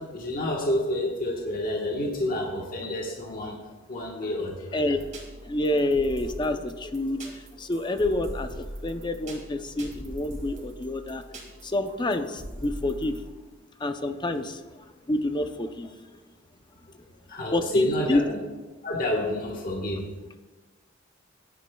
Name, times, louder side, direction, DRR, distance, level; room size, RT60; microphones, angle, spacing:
voice 1, 0.0-3.6 3.9-4.8 17.3-18.4 18.8-20.1, left 1 dB, 45° left, -2 dB, 1.3 m, -28 dB
sound 1, 4.9-13.3, right 1 dB, 40° right, 2.2 m, -41 dB
voice 2, 5.4-11.2 11.6-13.2 13.8-14.6 15.1-15.9 17.5-18.2, left 1 dB, 25° left, 8 dB, 0.6 m, -28 dB
15.5 x 10.0 x 2.3 m, 1.3 s
head